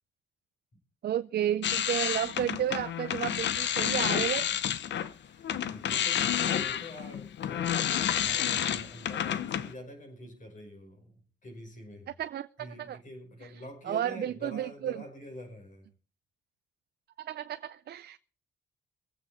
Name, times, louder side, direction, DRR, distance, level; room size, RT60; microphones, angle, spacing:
voice 1, 1.0-4.5 12.2-12.5 12.8-13.0 13.4-15.0 17.2-18.2, right 11 dB, 55° right, 0.5 m, -32 dB
sound 1, 1.6-5.1 5.4-9.7, left 10 dB, 65° left, 1.0 m, -30 dB
voice 2, 5.1-11.1 11.4-12.1 12.6-15.9, left 1 dB, 40° left, 5.7 m, -46 dB
23.0 x 8.6 x 4.4 m
cardioid pair, 90°, 20 cm